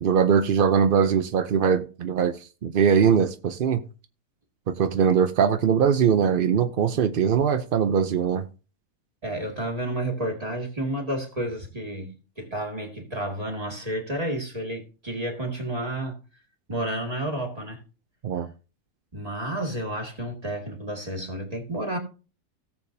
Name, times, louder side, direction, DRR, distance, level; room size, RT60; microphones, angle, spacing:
voice 1, 0.0-3.8 4.7-8.4 18.2-18.5, right 7 dB, 60° right, 0.5 m, -21 dB
voice 2, 9.2-16.2 16.7-17.8 19.1-22.0, right 1 dB, 25° right, 2.2 m, -31 dB
17.5 x 7.0 x 2.7 m
omnidirectional pair, 1.6 m